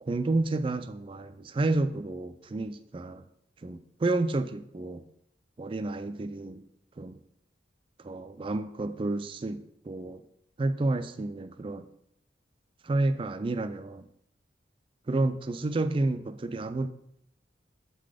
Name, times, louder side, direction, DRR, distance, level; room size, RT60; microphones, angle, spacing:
voice 1, 0.0-3.2 3.6-5.0 5.6-6.6 7.0-7.2 8.0-10.2 10.6-11.9 12.8-14.1 15.1-16.9, right 2 dB, 30° right, 11 dB, 0.4 m, -30 dB
7.4 x 3.9 x 4.9 m, 0.76 s
head